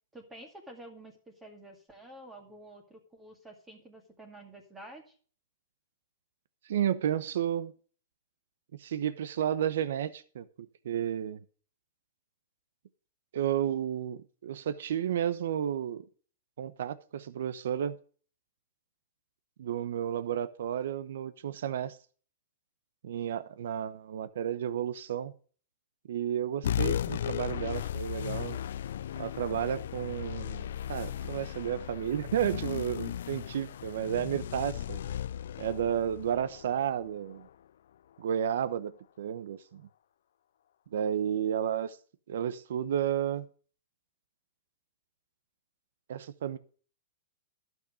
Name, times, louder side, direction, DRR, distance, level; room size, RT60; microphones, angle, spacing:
voice 1, 0.1-5.2, right 1 dB, 10° right, 2.1 m, -50 dB
voice 2, 6.7-7.7 8.8-10.5 10.8-11.4 13.3-16.0 16.6-18.0 19.6-22.0 23.0-25.3 26.1-28.6 29.2-35.0 35.6-37.5 38.2-38.9 39.2-39.8 40.9-42.0 42.3-43.5 46.1-46.6, right 9 dB, 70° right, 0.8 m, -32 dB
sound 1, 26.6-37.5, left 10 dB, 70° left, 0.3 m, -36 dB
11.5 x 6.4 x 5.0 m
hypercardioid pair, 145°, 0 cm